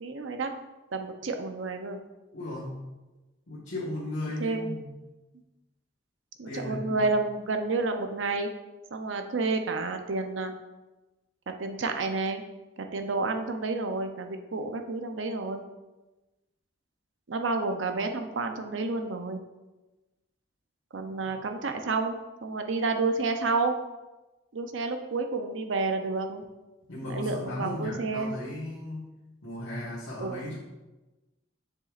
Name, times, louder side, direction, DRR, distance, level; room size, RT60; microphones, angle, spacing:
voice 1, 0.0-0.5 0.9-2.0 4.4-4.8 6.4-8.5 8.9-10.5 11.5-12.4 12.8-15.6 17.3-19.4 20.9-23.8 24.5-26.4 27.0-28.3 30.2-30.4, right 3 dB, 80° right, 6 dB, 0.6 m, -30 dB
voice 2, 2.3-2.9 3.5-5.0 6.5-7.1 21.0-21.3 26.9-29.1 29.4-30.6, left 1 dB, 85° left, -8 dB, 1.5 m, -36 dB
7.1 x 6.7 x 2.5 m, 1.1 s
head